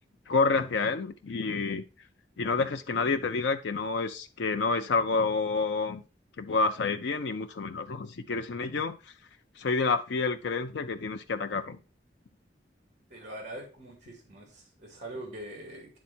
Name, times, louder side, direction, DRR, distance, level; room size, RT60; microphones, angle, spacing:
voice 1, 0.3-1.8 2.4-6.0 6.4-9.0 9.6-11.8, left 4 dB, 75° left, 7 dB, 0.5 m, -28 dB
voice 2, 13.1-16.0, right 1 dB, 40° right, 1 dB, 2.3 m, -43 dB
9.6 x 3.7 x 4.3 m, 0.32 s
head